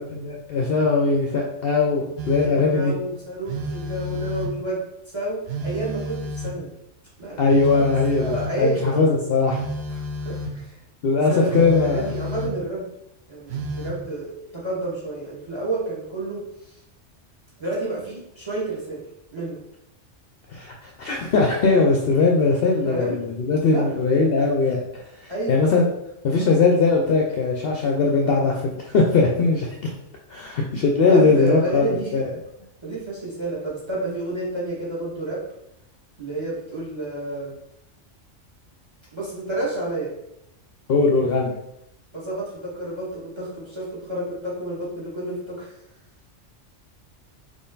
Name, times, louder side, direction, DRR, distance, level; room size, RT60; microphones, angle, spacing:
voice 1, 0.0-2.9 7.4-8.3 8.6-9.6 11.0-12.1 20.5-25.8 26.2-29.9 30.3-32.3 40.9-41.5, left 4 dB, 60° left, 0 dB, 0.7 m, -20 dB
Telephone, 2.2-2.7 3.5-4.7 5.5-6.7 7.5-8.7 9.5-10.6 11.5-12.7 13.5-14.0, equal, 65° right, 0.8 m, -31 dB
voice 2, 2.4-4.8 5.1-6.7 7.2-7.8 8.2-9.1 10.2-10.8 11.3-12.9 13.3-16.4 17.6-19.0 19.3-19.6 22.8-23.2 23.7-23.8 25.3-25.5 27.7-27.9 31.0-32.2 32.8-35.4 36.2-37.5 39.1-40.1 42.1-45.7, right 2 dB, 20° right, -6 dB, 1.9 m, -30 dB
4.3 x 3.1 x 3.9 m, 0.80 s
omnidirectional pair, 1.3 m